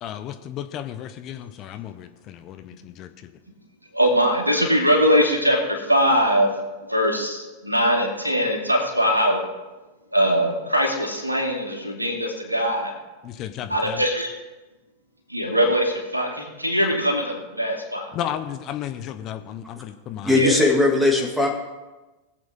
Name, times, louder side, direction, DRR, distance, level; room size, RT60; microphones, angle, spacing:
voice 1, 0.0-3.3 13.2-14.0 18.1-20.5, left 10 dB, 35° left, 9 dB, 0.8 m, -34 dB
voice 2, 3.9-6.5 6.9-9.4 10.1-12.9 13.7-14.3 15.3-18.1 20.3-20.6, equal, 85° right, 1 dB, 2.4 m, -21 dB
voice 3, 20.2-21.5, left 2 dB, ahead, 1 dB, 2.3 m, -18 dB
21.0 x 7.9 x 3.7 m, 1.1 s
figure-of-eight pair, 90°, 0 cm